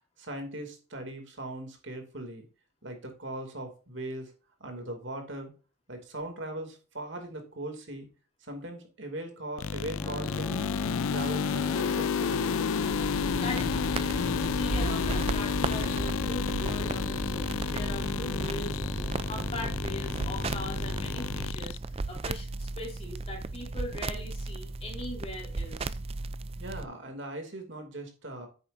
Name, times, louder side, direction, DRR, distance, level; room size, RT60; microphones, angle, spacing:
voice 1, 0.2-2.4 2.8-4.3 4.6-5.5 5.9-8.1 8.4-10.6 11.1-12.8 26.6-28.5, right 1 dB, 60° right, 4 dB, 2.6 m, -39 dB
sound 1, 9.6-21.8, left 6 dB, 80° left, 0.4 m, -31 dB
sound 2, 10.0-21.4, equal, 5° left, 1.5 m, -39 dB
sound 3, 12.8-26.8, right 3 dB, 30° right, 0.4 m, -35 dB
voice 2, 13.3-26.0, left 1 dB, 30° left, -1 dB, 3.8 m, -41 dB
9.9 x 9.0 x 2.6 m, 0.34 s
head